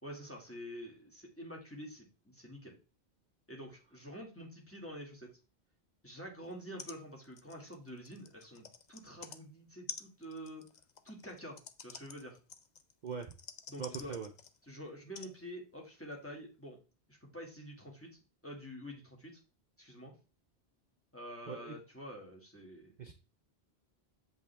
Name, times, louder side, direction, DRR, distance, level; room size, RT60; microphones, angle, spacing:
voice 1, 0.0-2.8 3.5-5.3 6.0-10.7 11.0-12.4 13.7-14.2 14.7-16.8 17.1-18.1 18.4-19.4 19.8-20.1 21.1-23.0, equal, 10° left, -1 dB, 2.1 m, -47 dB
sound 1, 6.5-6.6 6.8-7.0 7.2-9.4 9.9-14.6 15.1-15.3 16.1-16.2, left 6 dB, 50° left, 0.7 m, -49 dB
voice 2, 13.0-13.3 13.8-14.3 21.5-21.8 23.0-23.1, right 6 dB, 50° right, 5 dB, 0.7 m, -41 dB
7.2 x 5.4 x 3.4 m, 0.32 s
omnidirectional pair, 1.1 m